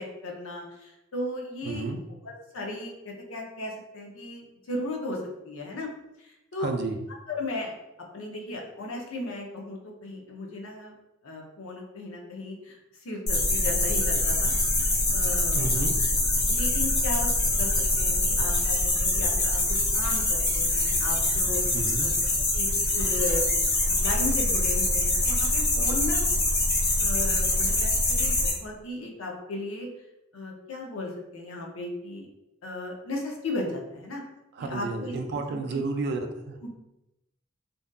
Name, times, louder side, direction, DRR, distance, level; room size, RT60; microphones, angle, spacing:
voice 1, 0.0-1.8 2.2-5.9 6.2-6.7 7.3-7.7 8.1-10.9 11.2-12.8 13.0-14.5 15.1-15.7 16.0-16.1 16.4-17.3 17.6-17.7 17.9-19.6 19.9-21.6 22.0-22.1 22.5-23.5 23.8-26.2 27.0-29.9 30.3-32.3 32.6-34.2 34.6-35.1 35.5-35.8 36.6-36.8, left 2 dB, 85° left, 0 dB, 0.6 m, -36 dB
voice 2, 1.7-2.0 6.6-7.0 15.5-15.9 21.7-22.1 34.6-36.6, right 3 dB, 55° right, 5 dB, 0.3 m, -31 dB
sound 1, 13.3-28.5, left 2 dB, 50° left, 0.8 m, -24 dB
2.6 x 2.4 x 2.2 m, 0.94 s
head